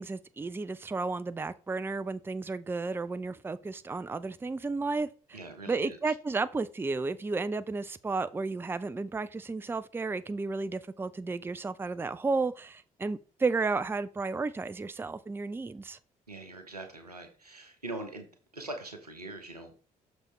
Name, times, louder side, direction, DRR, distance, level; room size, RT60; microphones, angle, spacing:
voice 1, 0.0-5.4 5.7-16.0, right 3 dB, 10° right, 0.5 m, -33 dB
voice 2, 5.3-6.0 16.3-18.3 18.5-19.7, right 2 dB, 85° right, 0.9 m, -42 dB
6.5 x 6.0 x 3.2 m
figure-of-eight pair, 45°, 19 cm